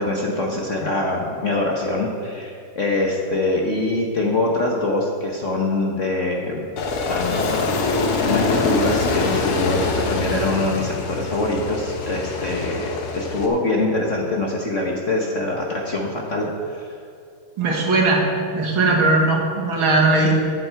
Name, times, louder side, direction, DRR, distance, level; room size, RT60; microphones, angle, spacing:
voice 1, 0.0-6.7 7.1-7.8 8.3-17.0, left 2 dB, 45° left, -1 dB, 1.1 m, -24 dB
Aircraft, 6.8-13.5, left 3 dB, 90° left, 2.1 m, -24 dB
voice 2, 17.6-18.2 18.5-20.3, right 2 dB, 70° right, -2 dB, 2.6 m, -18 dB
14.5 x 9.0 x 4.6 m, 2.4 s
omnidirectional pair, 2.4 m